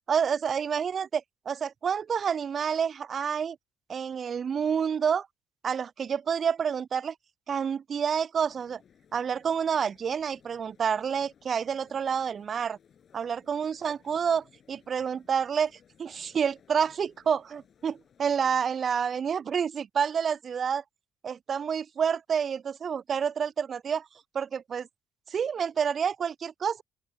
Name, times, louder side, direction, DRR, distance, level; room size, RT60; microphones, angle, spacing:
voice 1, 0.1-3.6 3.9-5.3 5.6-7.1 7.5-8.8 9.1-12.8 13.1-15.7 16.0-20.8 21.2-24.1 24.3-24.9 25.3-26.8, right 7 dB, 45° right, 0.4 m, -28 dB
sound 1, 8.4-18.6, left 8 dB, 50° left, 7.6 m, -61 dB
open air
hypercardioid pair, 50°, 0 cm